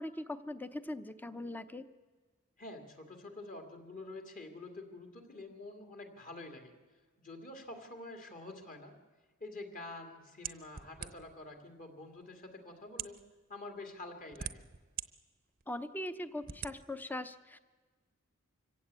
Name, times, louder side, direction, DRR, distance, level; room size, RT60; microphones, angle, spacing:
voice 1, 0.0-1.9 15.7-17.6, left 1 dB, 10° left, 11 dB, 0.8 m, -40 dB
voice 2, 2.6-6.7 7.2-8.9 9.4-13.2 13.5-14.6, left 2 dB, 40° left, 4 dB, 2.5 m, -47 dB
sound 1, 10.4-11.4 12.2-12.3 12.9-13.2 14.0-15.1 15.6-15.7 16.4-16.7, right 9 dB, 40° right, 0.8 m, -42 dB
25.0 x 16.5 x 8.3 m, 1.4 s
head